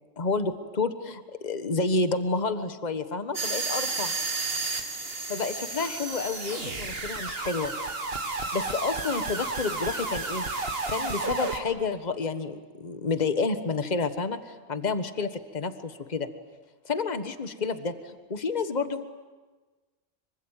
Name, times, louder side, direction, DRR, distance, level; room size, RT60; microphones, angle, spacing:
voice 1, 0.2-4.1 5.3-7.7 8.5-10.5 10.9-16.3 16.8-19.1, left 4 dB, 35° left, 9 dB, 1.5 m, -30 dB
sound 1, 3.3-11.6, right 3 dB, 50° right, 2.2 m, -32 dB
26.0 x 24.5 x 9.0 m, 1.3 s
omnidirectional pair, 1.4 m